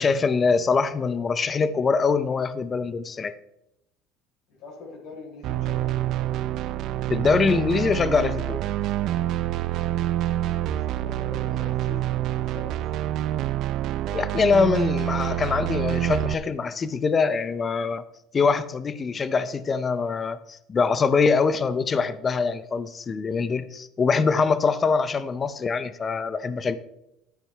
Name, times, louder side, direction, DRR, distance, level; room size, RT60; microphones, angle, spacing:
voice 1, 0.0-3.3 7.1-8.6 14.1-18.0 18.3-26.8, left 5 dB, 25° left, 13 dB, 0.5 m, -23 dB
voice 2, 4.5-6.3 10.7-13.4, left 3 dB, 60° left, -2 dB, 3.9 m, -44 dB
sound 1, 5.4-16.3, right 13 dB, 50° right, 0.4 m, -27 dB
12.0 x 9.2 x 3.3 m, 0.84 s
cardioid pair, 140°, 0 cm